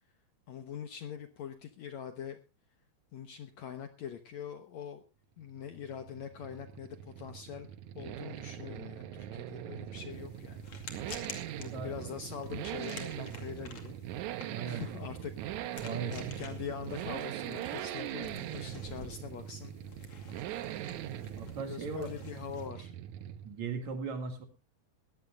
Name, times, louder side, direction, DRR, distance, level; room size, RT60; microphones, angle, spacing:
voice 1, 0.5-2.4 3.1-5.0 5.4-7.7 8.0-10.7 11.6-13.9 14.6-19.7 21.6-22.9, left 8 dB, 65° left, 8 dB, 1.9 m, -43 dB
Accelerating revving vroom, 5.4-23.6 23.9-24.0, right 12 dB, 75° right, 1.8 m, -41 dB
sound 1, 10.1-22.7, left 5 dB, 45° left, 3.1 m, -51 dB
voice 2, 11.7-12.1 14.5-14.9 15.8-16.3 21.4-22.1 23.4-24.4, right 5 dB, 55° right, 6 dB, 3.2 m, -38 dB
20.5 x 15.0 x 2.4 m, 0.30 s
omnidirectional pair, 4.2 m